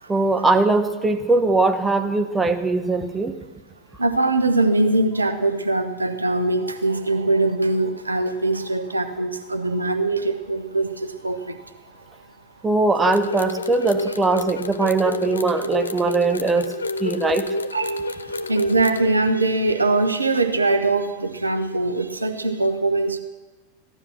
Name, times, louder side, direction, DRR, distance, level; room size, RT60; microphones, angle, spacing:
voice 1, 0.1-3.3 12.6-16.7 17.0-17.5, right 3 dB, 15° right, 8 dB, 1.2 m, -20 dB
voice 2, 4.0-12.2 17.7-23.2, right 2 dB, 80° right, 8 dB, 1.2 m, -22 dB
sound 1, 13.0-19.1, left 2 dB, 75° left, 0.6 m, -28 dB
15.5 x 12.0 x 6.2 m, 1.3 s
figure-of-eight pair, 90°, 0 cm